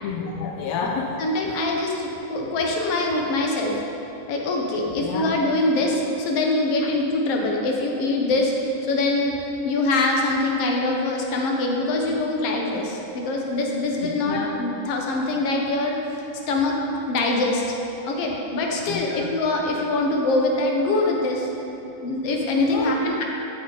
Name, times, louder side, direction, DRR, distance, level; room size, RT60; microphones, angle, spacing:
voice 1, 0.0-1.1 5.0-5.3 14.0-14.5 18.9-19.2 22.7-23.0, left 5 dB, 80° left, 1 dB, 1.5 m, -29 dB
voice 2, 1.2-3.8 4.3-9.4 9.7-16.0 16.5-16.8 17.1-17.6 18.0-21.5 22.0-23.2, left 2 dB, 55° left, 0 dB, 1.9 m, -23 dB
14.5 x 9.9 x 4.2 m, 3.0 s
omnidirectional pair, 3.9 m